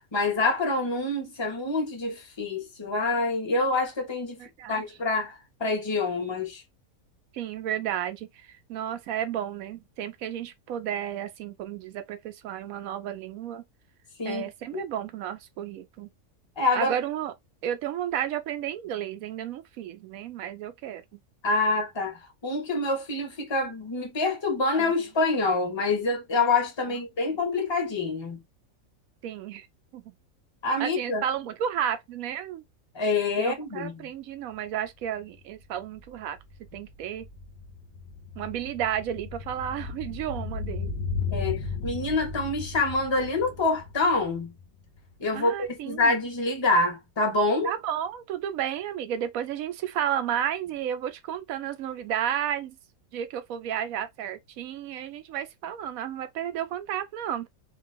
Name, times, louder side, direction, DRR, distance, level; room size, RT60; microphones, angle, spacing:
voice 1, 0.1-4.4 4.7-6.6 14.2-14.8 16.6-16.9 21.4-28.4 30.6-31.2 32.9-34.1 41.3-44.5 45.2-47.7, left 3 dB, 20° left, 0.8 m, -26 dB
voice 2, 4.4-4.8 7.3-13.6 14.2-16.1 16.7-17.3 17.6-21.2 24.8-24.9 29.2-29.7 29.9-30.2 30.8-32.6 33.4-36.4 36.7-37.3 38.4-40.9 45.3-46.1 47.6-52.8 53.1-57.5, right 10 dB, 75° right, 1.0 m, -32 dB
sound 1, 34.6-34.7 35.0-45.4 45.6-45.7, left 4 dB, 45° left, 0.7 m, -36 dB
2.6 x 2.4 x 3.3 m
omnidirectional pair, 1.5 m